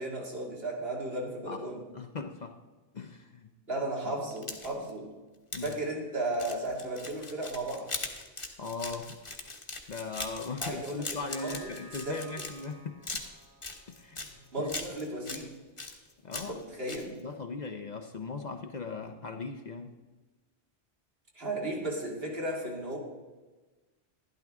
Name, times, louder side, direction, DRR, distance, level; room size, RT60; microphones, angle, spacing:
voice 1, 0.0-1.8 3.7-5.1 5.6-7.9 10.6-11.7 12.1-12.2 14.5-15.5 16.5-17.2 21.4-23.0, right 1 dB, 60° right, -2 dB, 2.5 m, -35 dB
voice 2, 1.9-2.6 2.9-3.5 4.1-4.2 5.5-5.8 8.6-9.2 9.9-13.0 14.0-14.3 14.6-14.7 16.2-16.6 17.2-19.9, left 4 dB, 50° left, 5 dB, 0.7 m, -39 dB
sound 1, 4.3-4.9 5.5-5.7 6.3-12.7 13.0-14.3 14.7-15.4 15.8-16.6 16.9-17.0, left 3 dB, 30° left, 1.1 m, -40 dB
sound 2, 11.1-15.5 15.9-16.0, right 1 dB, 45° right, 2.8 m, -54 dB
12.0 x 11.5 x 3.6 m, 1.2 s
omnidirectional pair, 1.1 m